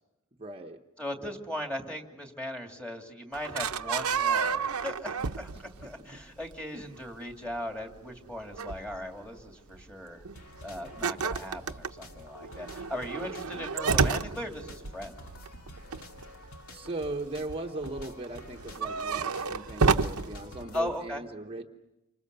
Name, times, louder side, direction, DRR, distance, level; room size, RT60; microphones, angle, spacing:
voice 1, 0.4-0.8 1.2-1.3 5.5-6.2 6.7-7.0 16.7-21.7, right 2 dB, 25° right, 3 dB, 1.0 m, -39 dB
voice 2, 1.0-10.2 10.6-15.1 20.7-21.2, left 1 dB, 5° left, 3 dB, 2.6 m, -38 dB
sound 1, 3.3-5.9 6.2-6.5 7.2-7.5 7.9-8.0 8.4-9.0 9.4-9.5 9.7-9.9 10.3-10.4 10.7-16.5 16.9-17.5 17.8-20.4, right 5 dB, 85° right, 0.8 m, -30 dB
sound 2, 10.4-21.0, left 1 dB, 70° left, 2.4 m, -49 dB
29.0 x 26.0 x 6.8 m, 0.99 s
head